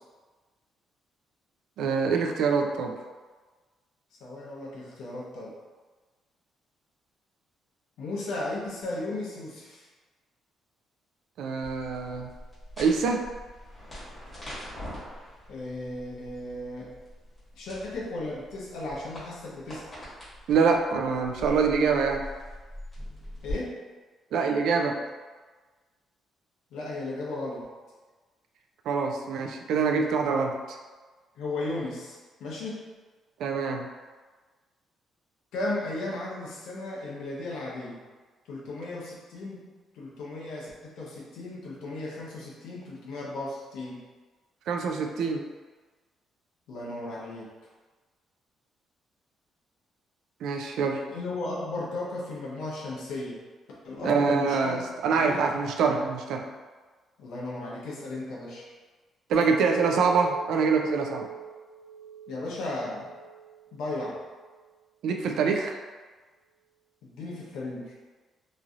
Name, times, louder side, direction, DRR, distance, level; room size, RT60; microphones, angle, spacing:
voice 1, 1.8-3.0 11.4-12.3 12.8-13.2 20.5-22.2 24.3-25.0 28.9-30.8 33.4-33.9 44.7-45.4 50.4-51.0 54.0-56.5 59.3-61.3 65.0-65.8, right 5 dB, 75° right, 3 dB, 0.3 m, -25 dB
voice 2, 4.2-5.5 8.0-9.8 15.5-16.9 17.5-19.9 23.4-23.8 26.7-27.7 31.4-32.8 35.5-38.0 38.5-39.7 39.9-44.0 46.7-47.5 51.1-53.4 53.8-55.5 57.2-58.6 62.3-63.1 63.7-64.2 67.0-67.9, left 2 dB, 90° left, -5 dB, 0.8 m, -35 dB
sound 1, 11.6-23.5, left 1 dB, 20° left, 1.4 m, -43 dB
Chink clink, 59.3-63.7 64.1-64.7, right 7 dB, 65° left, 0.5 m, -42 dB
3.0 x 2.6 x 2.4 m, 1.3 s
cardioid pair, 140°, 0 cm